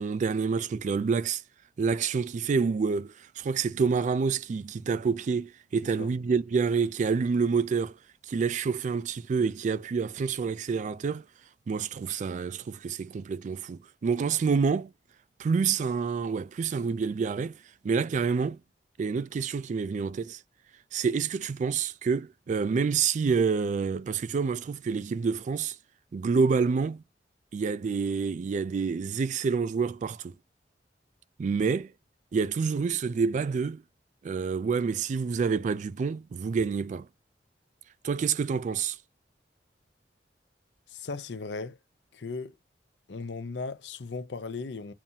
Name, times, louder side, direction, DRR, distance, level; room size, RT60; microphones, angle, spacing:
voice 1, 0.0-1.4 1.8-8.0 8.3-11.3 11.7-14.9 15.4-17.6 17.8-18.6 19.0-20.4 20.9-25.8 26.1-27.0 27.5-30.3 31.4-31.9 32.3-33.8 34.2-37.1 38.0-39.0, right 5 dB, 45° right, 0.3 m, -28 dB
voice 2, 40.9-41.8 42.1-42.5 43.1-44.9, left 4 dB, 80° left, 0.7 m, -37 dB
7.2 x 2.5 x 2.7 m
head